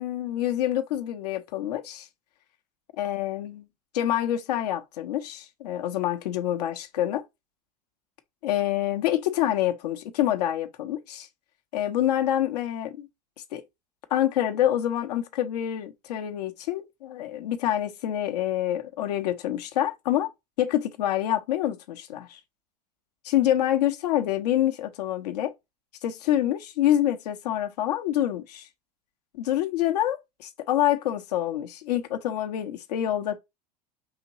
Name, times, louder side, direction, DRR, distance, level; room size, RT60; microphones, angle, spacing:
voice 1, 0.0-2.1 3.0-3.7 3.9-7.2 8.4-11.3 11.7-13.1 13.5-13.6 14.1-20.3 20.6-22.4 23.2-25.5 26.0-28.7 29.3-33.4, left 12 dB, 70° left, 0.9 m, -26 dB
4.9 x 3.0 x 2.8 m
hypercardioid pair, 90°, 21 cm